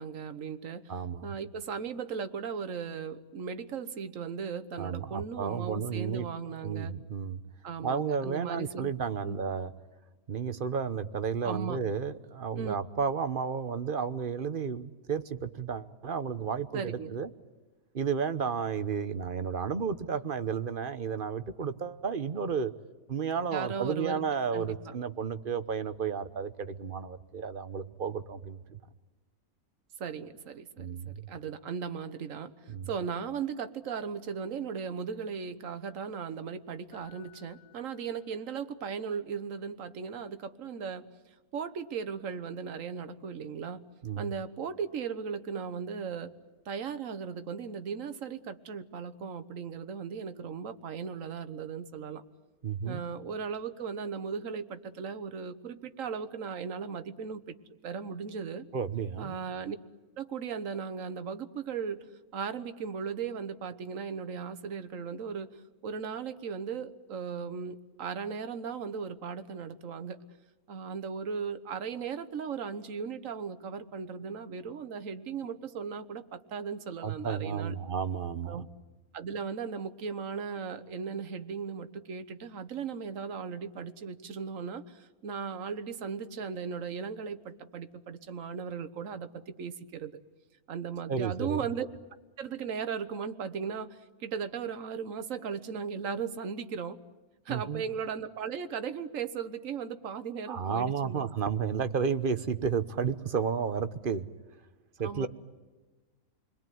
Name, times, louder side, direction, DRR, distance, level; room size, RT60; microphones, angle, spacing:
voice 1, 0.0-0.9 1.2-7.0 7.6-8.9 9.2-9.4 11.4-11.8 12.5-12.7 16.7-17.1 23.5-24.2 24.5-24.9 30.0-41.1 41.5-43.8 44.2-46.3 46.6-52.2 52.8-57.6 57.8-58.7 59.2-59.8 60.2-62.0 62.3-65.6 65.8-70.2 70.7-77.8 78.4-78.7 79.1-90.2 90.7-91.9 92.4-97.0 97.4-101.3 105.0-105.3, right 6 dB, 60° right, 10 dB, 1.5 m, -37 dB
voice 2, 0.9-1.3 4.8-6.3 6.6-7.4 7.8-9.7 10.3-17.3 17.9-22.7 23.1-28.8 30.8-31.3 32.7-32.9 44.0-44.3 52.6-53.0 58.7-59.3 77.0-78.7 91.1-91.6 97.5-97.8 100.5-104.3 105.0-105.3, right 6 dB, 40° right, 11 dB, 1.1 m, -32 dB
Keyboard (musical), 36.9-38.9 42.1-42.3, left 13 dB, 70° left, 6.3 m, -61 dB
29.0 x 21.5 x 9.3 m, 1.3 s
omnidirectional pair, 1.6 m